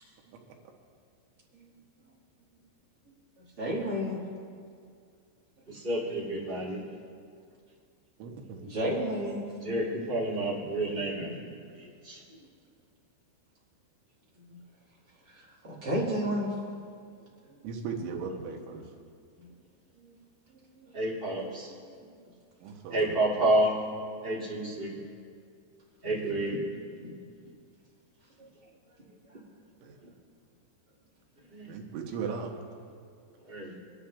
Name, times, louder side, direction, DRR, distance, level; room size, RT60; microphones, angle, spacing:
voice 1, 3.6-4.2 8.6-9.4 15.3-15.4 15.6-16.5 17.5-17.6 19.4-19.5 20.0-20.1 20.9-21.0 21.7-22.1 28.4-28.5, equal, 40° right, -6 dB, 1.5 m, -32 dB
voice 2, 5.7-6.8 9.5-11.5 11.7-12.2 20.9-21.7 22.9-23.7 24.2-24.9 26.0-26.6 27.0-27.1 31.5-31.7 33.4-33.7, right 1 dB, 20° right, -7 dB, 1.8 m, -30 dB
voice 3, 8.2-8.6 17.6-18.9 22.6-23.2 29.8-30.1 31.7-32.5, right 5 dB, 90° right, 1 dB, 3.6 m, -37 dB
25.0 x 11.5 x 2.4 m, 2.2 s
omnidirectional pair, 5.3 m